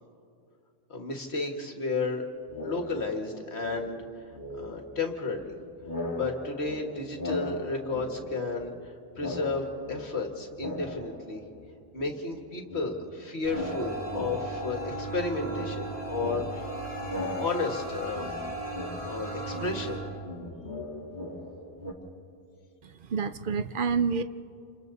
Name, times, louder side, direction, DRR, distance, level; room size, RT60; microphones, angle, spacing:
voice 1, 0.9-2.3 2.6-4.0 4.6-5.5 6.1-11.4 11.9-16.7 17.4-18.3 19.0-20.0, left 3 dB, 60° left, 3 dB, 2.2 m, -32 dB
sound 1, 2.5-3.4 3.6-5.5 5.8-8.9 9.1-11.7 12.0-21.9, left 1 dB, 40° left, 2.4 m, -39 dB
sound 2, 13.4-20.0, right 2 dB, 35° right, 8.3 m, -36 dB
voice 2, 22.8-24.2, right 5 dB, 50° right, 11 dB, 0.7 m, -28 dB
28.5 x 27.5 x 4.1 m, 2.5 s
omnidirectional pair, 1.3 m